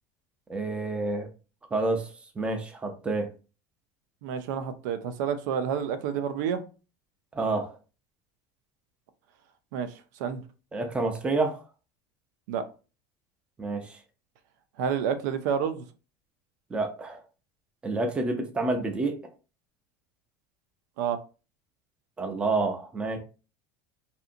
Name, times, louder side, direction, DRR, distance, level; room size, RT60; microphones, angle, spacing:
voice 1, 0.5-1.3 1.7-3.3 7.3-7.7 10.7-11.6 13.6-14.0 16.7-17.2 17.8-19.2 22.2-23.2, right 3 dB, 10° right, 5 dB, 0.4 m, -28 dB
voice 2, 4.2-6.6 9.7-9.9 10.2-10.4 12.5-12.6 14.8-15.8 21.0-21.2, right 7 dB, 80° right, 10 dB, 0.5 m, -29 dB
2.7 x 2.5 x 2.5 m, 0.34 s
supercardioid pair, 150°, 10 cm